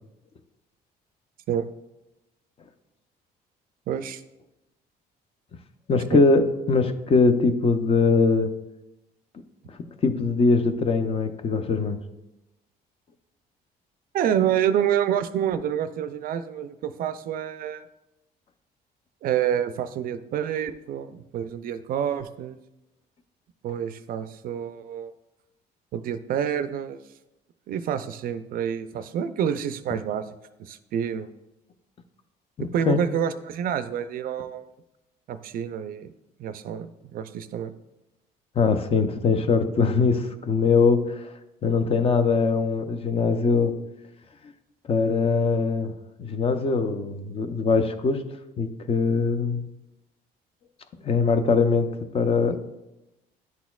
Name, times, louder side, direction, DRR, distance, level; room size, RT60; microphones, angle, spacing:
voice 1, 3.9-4.2 6.1-6.2 14.1-17.9 19.2-22.6 23.6-25.1 25.9-27.0 27.7-30.3 30.6-31.3 32.7-34.7 35.3-36.1 36.4-37.7 52.5-52.6, right 9 dB, 60° right, 12 dB, 0.4 m, -28 dB
voice 2, 5.9-8.5 10.0-12.0 32.6-33.0 38.6-41.2 41.6-43.7 44.9-45.9 46.2-48.2 48.6-49.6 51.0-52.6, left 4 dB, 35° left, 9 dB, 0.5 m, -22 dB
10.5 x 4.1 x 2.3 m, 0.96 s
cardioid pair, 110°, 17 cm